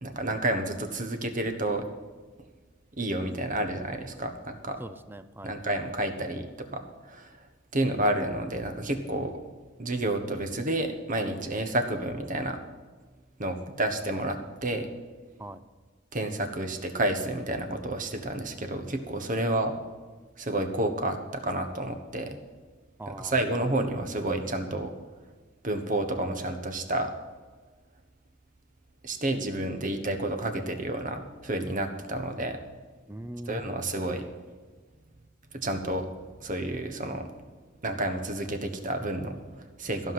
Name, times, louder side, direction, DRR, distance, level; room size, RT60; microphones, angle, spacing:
voice 1, 0.0-1.9 3.0-4.8 5.4-7.5 7.7-9.4 9.8-12.6 13.4-14.9 16.1-19.7 20.4-22.4 23.1-24.9 25.6-27.1 29.0-32.6 33.5-34.2 35.5-36.1 36.4-37.3 37.8-40.1, right 1 dB, 40° right, 7 dB, 1.3 m, -30 dB
voice 2, 4.8-5.6 15.4-15.6 23.0-23.4 33.1-33.8, right 1 dB, 10° right, 12 dB, 0.5 m, -41 dB
15.0 x 5.7 x 9.4 m, 1.4 s
head